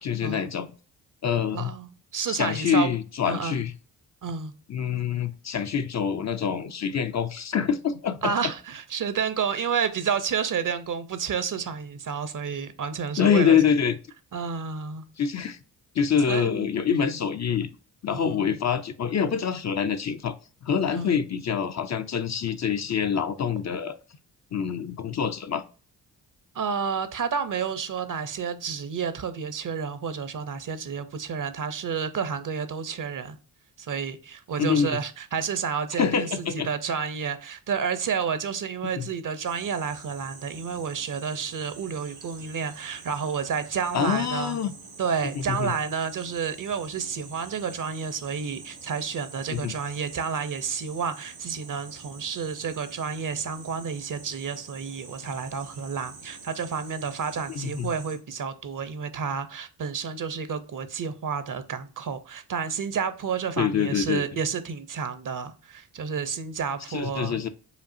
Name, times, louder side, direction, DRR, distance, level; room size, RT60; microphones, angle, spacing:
voice 1, 0.0-0.7 1.2-1.7 2.3-3.7 4.7-8.3 13.2-14.0 15.2-15.6 16.0-17.7 18.0-20.4 20.6-24.0 24.5-25.6 34.6-35.0 36.0-36.7 38.8-39.1 43.9-44.8 45.4-45.7 49.5-49.7 57.5-57.9 63.6-64.2 66.9-67.5, left 7 dB, 45° left, 0.5 m, -25 dB
voice 2, 1.5-2.9 3.2-3.6 4.2-4.5 8.2-13.6 14.3-15.0 16.3-17.2 18.1-18.6 20.9-21.1 26.5-33.4 33.8-44.6 45.0-67.4, right 6 dB, 50° right, 0.7 m, -30 dB
sound 1, 39.4-58.2, right 4 dB, 75° right, 1.5 m, -46 dB
5.1 x 2.4 x 2.6 m
cardioid pair, 55°, 41 cm